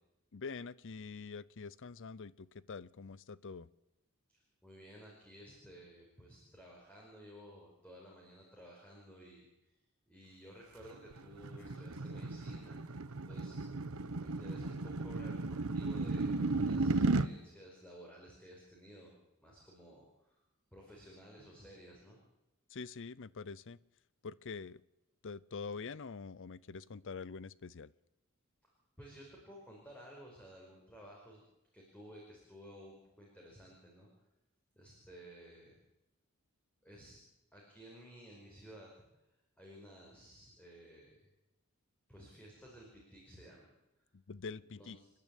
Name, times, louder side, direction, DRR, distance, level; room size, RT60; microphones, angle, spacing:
voice 1, 0.3-3.7 22.7-23.8 24.2-24.8 25.2-27.9 44.1-45.0, left 4 dB, 60° left, 20 dB, 0.6 m, -45 dB
voice 2, 4.3-9.7 10.1-12.9 13.2-13.6 14.2-20.4 20.7-22.2 28.6-28.7 29.0-31.4 31.7-34.1 34.8-35.7 36.8-37.2 37.5-38.9 39.6-41.3 42.1-43.7 44.6-45.1, equal, 5° left, -2 dB, 4.9 m, -55 dB
sound 1, 10.8-17.3, right 3 dB, 70° right, 1.0 m, -35 dB
29.0 x 10.5 x 8.4 m, 0.93 s
head